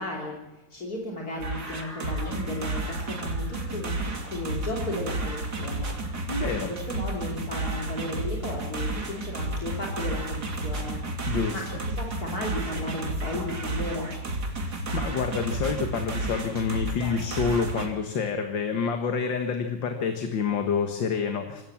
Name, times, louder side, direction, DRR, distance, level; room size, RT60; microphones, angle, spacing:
voice 1, 0.0-5.9 6.2-14.1, left 2 dB, 55° left, -2 dB, 3.5 m, -35 dB
sound 1, 1.2-7.1, equal, 5° left, 5.3 m, -49 dB
sound 2, 1.4-17.9, right 2 dB, 60° right, 3.3 m, -32 dB
voice 2, 6.3-6.7 11.3-11.6 14.6-21.6, left 6 dB, 85° left, 5 dB, 2.3 m, -28 dB
26.0 x 14.0 x 7.3 m, 1.1 s
omnidirectional pair, 2.0 m